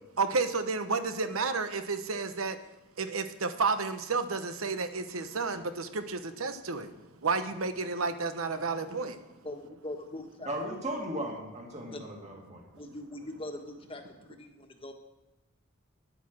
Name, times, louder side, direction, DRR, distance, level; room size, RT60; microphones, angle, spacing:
voice 1, 0.2-2.6 3.0-6.9 7.2-9.2, right 4 dB, 85° right, 9 dB, 1.0 m, -31 dB
voice 2, 9.4-10.5 11.9-12.0 12.8-14.0 14.4-14.9, left 1 dB, 25° left, 4 dB, 1.4 m, -41 dB
voice 3, 10.5-12.6, right 1 dB, 35° right, 0 dB, 2.2 m, -36 dB
11.0 x 9.0 x 6.2 m, 1.1 s
head